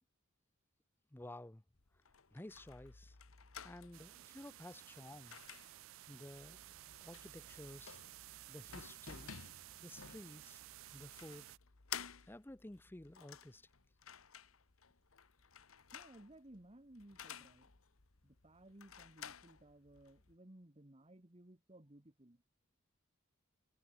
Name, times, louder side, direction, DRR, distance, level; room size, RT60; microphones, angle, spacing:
voice 1, 1.1-1.6 2.3-3.2 3.6-5.4 6.1-6.6 7.0-8.0 8.5-9.3 9.8-10.6 10.9-11.5 12.3-13.7, left 1 dB, 10° left, 0.6 m, -53 dB
sound 1, 1.7-20.3, left 8 dB, 85° left, 1.5 m, -54 dB
sound 2, 3.9-11.6, right 16 dB, 65° right, 0.3 m, -55 dB
voice 2, 15.9-17.7 18.2-22.4, right 1 dB, 30° right, 1.6 m, -59 dB
head